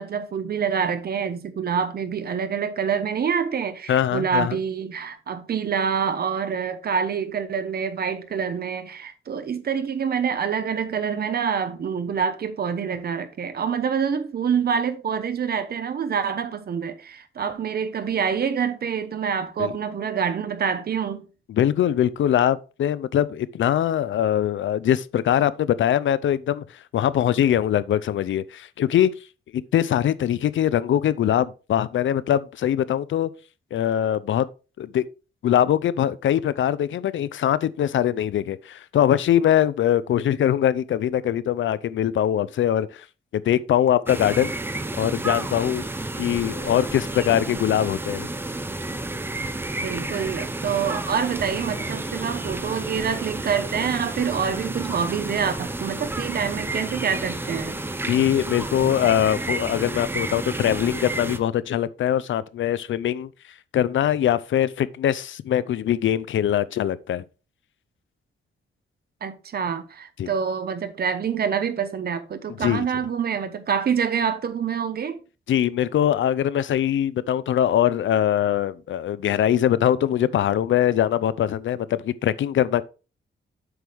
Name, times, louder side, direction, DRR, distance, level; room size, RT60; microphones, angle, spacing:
voice 1, 0.0-21.2 49.8-57.8 69.2-75.2, right 7 dB, 50° right, 1.0 m, -26 dB
voice 2, 3.9-4.6 19.6-19.7 21.5-26.6 26.9-29.1 29.7-33.3 33.7-34.5 34.8-35.0 35.4-43.0 43.3-44.5 45.0-45.8 46.2-48.3 58.1-63.3 63.7-67.2 70.2-70.3 72.6-72.9 75.5-82.8, left 10 dB, 75° left, 0.5 m, -22 dB
sound 1, 44.1-61.4, right 2 dB, 10° right, 0.6 m, -31 dB
8.0 x 6.2 x 3.5 m
wide cardioid pair, 175°, 20 cm